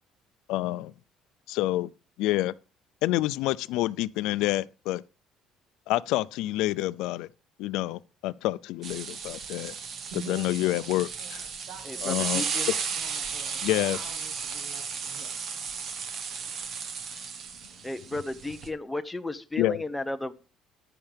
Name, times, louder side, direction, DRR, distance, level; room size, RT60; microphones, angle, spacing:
voice 1, 0.5-0.9 1.5-1.9 2.2-2.5 3.0-5.0 5.9-7.3 7.6-9.7 10.3-11.4 12.0-12.4 13.6-14.0 19.6-19.8, left 16 dB, 85° left, 0.5 m, -28 dB
sound 1, 8.8-18.7, right 6 dB, 40° right, 1.5 m, -34 dB
voice 2, 10.1-10.9 11.2-15.3, right 6 dB, 75° right, 1.6 m, -46 dB
voice 3, 11.8-12.7 17.8-20.3, left 2 dB, 5° left, 0.8 m, -34 dB
14.5 x 10.0 x 3.5 m
cardioid pair, 175°, 0 cm